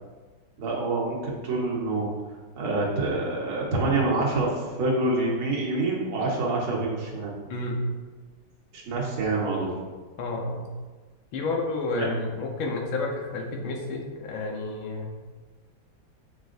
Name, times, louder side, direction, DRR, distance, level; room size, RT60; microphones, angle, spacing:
voice 1, 0.6-2.1 2.6-7.4 8.7-9.7 11.9-12.1, right 2 dB, 90° right, -3 dB, 2.1 m, -26 dB
voice 2, 7.5-7.8 10.2-10.7 11.3-15.1, left 3 dB, 85° left, 1 dB, 1.7 m, -30 dB
7.7 x 4.8 x 2.5 m, 1.4 s
omnidirectional pair, 2.2 m